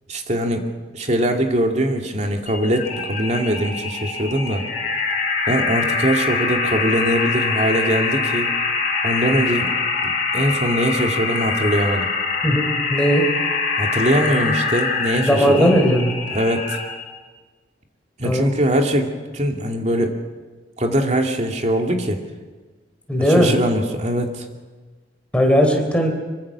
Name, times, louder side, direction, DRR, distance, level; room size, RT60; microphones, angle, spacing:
voice 1, 0.1-0.6 0.9-4.6 5.5-8.5 9.0-9.7 10.0-12.1 13.8-15.8 16.3-16.8 18.2-20.2 20.8-22.2 23.3-24.4, equal, 40° right, 3 dB, 2.6 m, -22 dB
sound 1, 2.5-17.0, left 4 dB, 45° left, 5.5 m, -24 dB
voice 2, 12.9-13.2 15.1-16.1 18.2-18.5 23.1-23.5 25.3-26.1, equal, 5° left, 3 dB, 3.9 m, -17 dB
24.5 x 24.0 x 6.3 m, 1.3 s
head